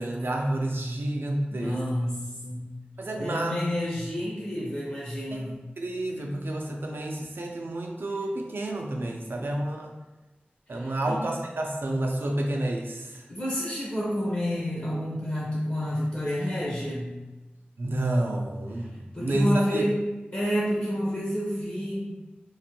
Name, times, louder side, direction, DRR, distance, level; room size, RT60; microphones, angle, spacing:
voice 1, 0.0-1.8 3.0-3.6 5.3-5.5 5.8-9.9 10.7-13.2 17.8-19.9, right 1 dB, 80° right, 1 dB, 0.4 m, -29 dB
voice 2, 1.5-2.7 3.2-5.6 10.7-11.2 13.3-17.2 19.1-22.1, equal, 55° left, -6 dB, 0.8 m, -29 dB
3.1 x 2.1 x 2.9 m, 1.1 s
wide cardioid pair, 55°, 4 cm